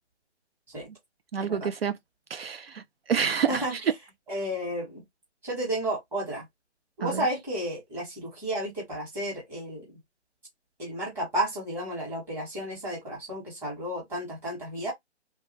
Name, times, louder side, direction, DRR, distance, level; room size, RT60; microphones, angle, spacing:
voice 1, 1.3-2.0 2.3-3.9 7.0-7.3, right 7 dB, 55° right, 0.5 m, -28 dB
voice 2, 4.3-5.0 5.4-6.4 7.0-9.8 10.8-14.9, right 1 dB, 5° right, 1.0 m, -32 dB
3.2 x 2.3 x 3.0 m
hypercardioid pair, 160°, 35 cm